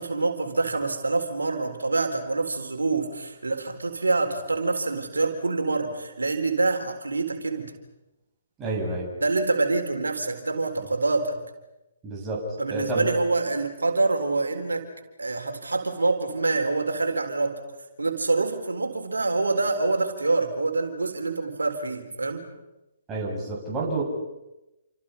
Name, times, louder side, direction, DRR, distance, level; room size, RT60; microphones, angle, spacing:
voice 1, 0.0-7.7 9.2-11.4 12.6-14.9 15.2-17.6 18.0-22.4, right 3 dB, 85° right, 5 dB, 4.0 m, -26 dB
voice 2, 8.6-9.1 12.0-13.1 23.1-24.0, right 2 dB, 20° right, -3 dB, 8.0 m, -29 dB
29.0 x 27.0 x 5.7 m, 0.98 s
figure-of-eight pair, 135°, 0 cm